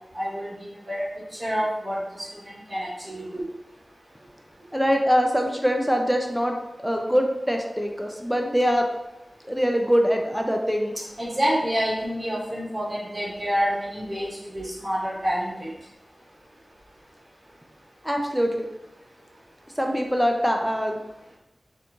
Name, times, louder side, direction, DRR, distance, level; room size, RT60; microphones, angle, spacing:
voice 1, 0.1-1.1 1.4-3.4 11.2-15.7, equal, 40° right, -8 dB, 1.4 m, -28 dB
voice 2, 4.7-6.6 6.8-8.9 9.5-10.9 18.0-18.7 19.8-21.0, equal, ahead, 2 dB, 0.3 m, -23 dB
2.9 x 2.2 x 2.6 m, 0.93 s
cardioid pair, 50°, 0 cm